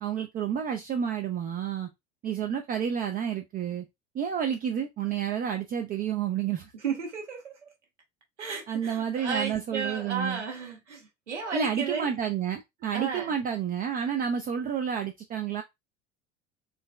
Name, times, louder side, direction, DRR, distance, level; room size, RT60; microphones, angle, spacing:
voice 1, 0.0-1.9 2.2-3.8 4.1-6.7 8.7-10.4 11.5-15.6, right 8 dB, 25° right, 0.5 m, -30 dB
voice 2, 6.8-7.5 8.4-12.1 12.9-13.3, right 5 dB, 80° right, 1.1 m, -33 dB
3.8 x 2.9 x 2.2 m
figure-of-eight pair, 70°, 35 cm